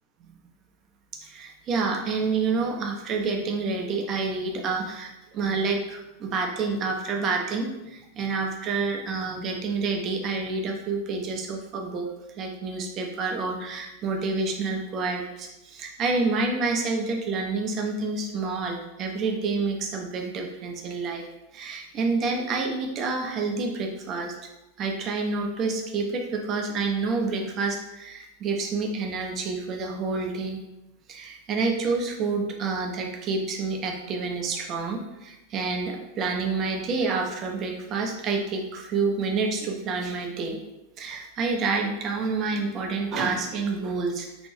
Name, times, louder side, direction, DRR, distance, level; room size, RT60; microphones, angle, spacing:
voice 1, 1.2-12.1 12.4-21.3 21.5-24.3 24.8-30.6 31.1-40.6 41.0-44.5, right 4 dB, 30° right, 2 dB, 0.5 m, -28 dB
3.0 x 2.5 x 3.1 m, 0.94 s
figure-of-eight pair, 90°, 0 cm